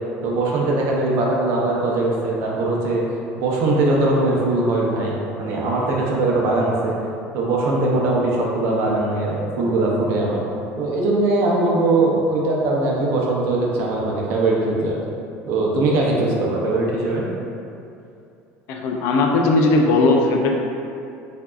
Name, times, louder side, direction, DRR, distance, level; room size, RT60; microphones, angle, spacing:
voice 1, 0.2-3.0 3.4-6.9 7.3-10.4 10.8-15.0 15.5-17.2, right 2 dB, 60° right, -3 dB, 0.6 m, -21 dB
voice 2, 18.7-20.5, left 2 dB, 60° left, 1 dB, 0.4 m, -18 dB
4.5 x 2.7 x 2.4 m, 2.6 s
cardioid pair, 165°, 5 cm